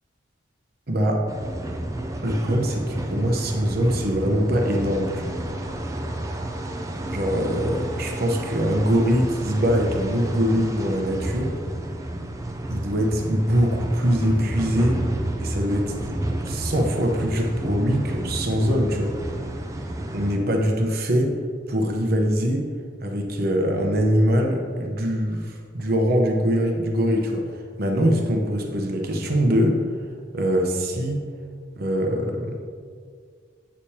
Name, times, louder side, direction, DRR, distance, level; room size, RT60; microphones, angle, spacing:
voice 1, 0.9-1.3 2.2-5.4 7.1-11.5 12.7-15.0 15.4-16.0 16.4-19.1 20.1-21.4 21.7-22.7 23.0-27.4 27.8-29.8 30.3-31.2 31.8-32.5, equal, 50° right, 2 dB, 1.0 m, -23 dB
sound 1, 1.3-20.4, right 1 dB, 15° right, 0.5 m, -31 dB
8.7 x 6.5 x 2.9 m, 2.1 s
head